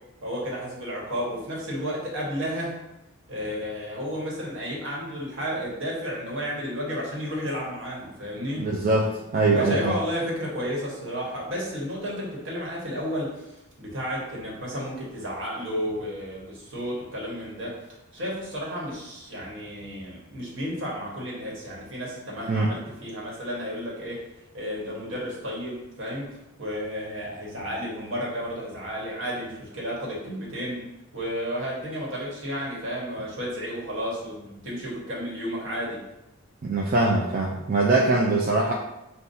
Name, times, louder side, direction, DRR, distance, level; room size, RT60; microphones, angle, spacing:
voice 1, 0.2-2.8 3.3-8.7 9.5-17.7 18.1-24.2 24.5-26.3 26.6-30.8 31.1-36.0, equal, 60° right, -4 dB, 1.2 m, -32 dB
voice 2, 8.6-9.9 22.5-22.7 36.6-38.7, right 2 dB, 40° right, -2 dB, 0.3 m, -22 dB
5.4 x 2.3 x 2.6 m, 0.91 s
head